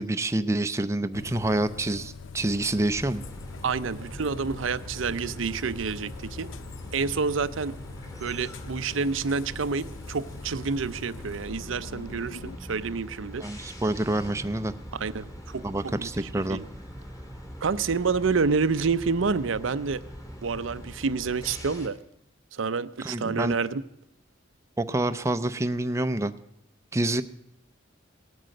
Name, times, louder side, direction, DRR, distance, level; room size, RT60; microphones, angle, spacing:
voice 1, 0.0-3.2 13.4-14.7 15.6-16.6 23.0-23.5 24.8-26.3 26.9-27.2, right 1 dB, 15° right, 9 dB, 0.5 m, -27 dB
sound 1, 1.1-12.6, left 4 dB, 85° left, 0.6 m, -43 dB
sound 2, 2.9-21.9, equal, 15° left, 2.2 m, -42 dB
voice 2, 3.6-6.5 6.9-7.7 8.2-13.4 15.0-16.6 17.6-20.0 20.4-22.0 22.5-23.8, right 5 dB, 85° right, 13 dB, 0.6 m, -28 dB
18.0 x 9.1 x 7.7 m, 0.77 s
head